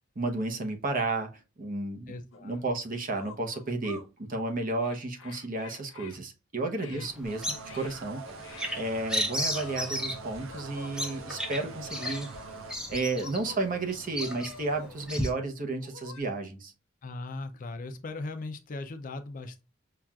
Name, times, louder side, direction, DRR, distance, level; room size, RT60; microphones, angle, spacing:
voice 1, 0.2-2.1 2.4-4.0 4.3-8.2 8.7-12.3 12.9-16.7, right 2 dB, 45° right, 0.7 m, -32 dB
voice 2, 2.1-2.6 6.9-7.1 17.0-19.6, left 2 dB, 40° left, 0.5 m, -39 dB
sound 1, 2.3-2.4 3.1-4.1 4.8-6.2 6.7-7.1 7.7-8.0 8.4-9.0 9.5-10.1 10.5-11.5 11.9-12.6 13.2-13.8 14.2-15.2 15.8-16.2, left 4 dB, 85° left, 0.8 m, -48 dB
Bird vocalization bird call bird song, 7.0-15.3, equal, 5° right, 0.7 m, -35 dB
sound 2, 7.2-12.8, right 4 dB, 85° right, 0.5 m, -44 dB
5.7 x 2.4 x 2.3 m
head